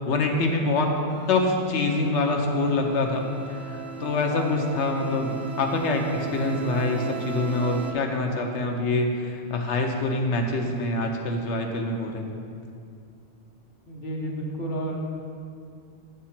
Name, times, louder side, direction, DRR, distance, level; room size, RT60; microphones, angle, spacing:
voice 1, 0.1-0.9 1.3-3.2 3.5-12.3, left 2 dB, 90° left, 3 dB, 1.1 m, -25 dB
sound 1, 1.1-7.9, right 6 dB, 60° right, 0.6 m, -37 dB
voice 2, 13.9-15.0, right 1 dB, 50° left, -1 dB, 1.0 m, -31 dB
7.4 x 3.6 x 5.7 m, 2.4 s
omnidirectional pair, 1.1 m